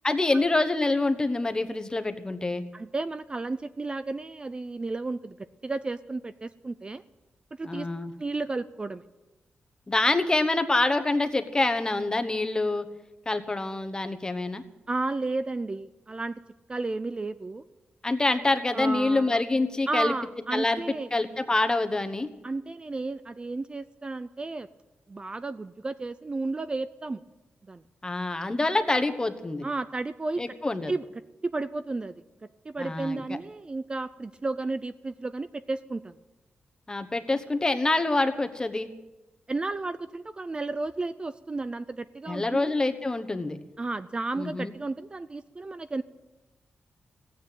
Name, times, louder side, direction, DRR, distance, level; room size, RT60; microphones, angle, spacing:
voice 1, 0.0-2.6 7.6-8.1 9.9-12.9 13.3-14.6 18.0-20.1 20.5-20.8 21.1-22.3 28.0-29.7 30.4-30.9 32.8-33.2 36.9-38.9 42.3-43.6 44.4-44.7, left 2 dB, 20° left, 8 dB, 1.2 m, -26 dB
voice 2, 2.7-5.4 5.6-7.0 7.6-7.9 8.2-9.0 14.9-16.3 16.7-17.6 18.7-19.4 19.9-21.1 22.4-24.7 25.1-27.2 27.7-27.8 29.6-30.5 30.9-31.1 31.4-32.1 32.6-36.2 39.5-42.8 43.8-46.0, right 3 dB, 25° right, 13 dB, 0.5 m, -32 dB
15.5 x 9.3 x 8.9 m, 1.1 s
wide cardioid pair, 105°, 4 cm